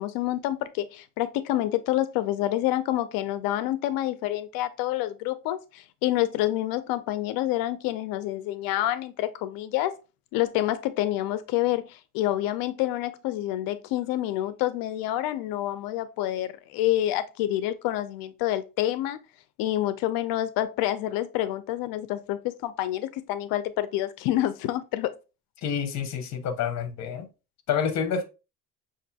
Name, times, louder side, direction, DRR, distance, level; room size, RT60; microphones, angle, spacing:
voice 1, 0.0-9.9 10.3-19.2 19.6-25.1, left 14 dB, 85° left, 0.5 m, -28 dB
voice 2, 25.6-27.3 27.7-28.2, left 7 dB, 50° left, 0.9 m, -28 dB
6.0 x 2.6 x 2.7 m
cardioid pair, 140°, 34 cm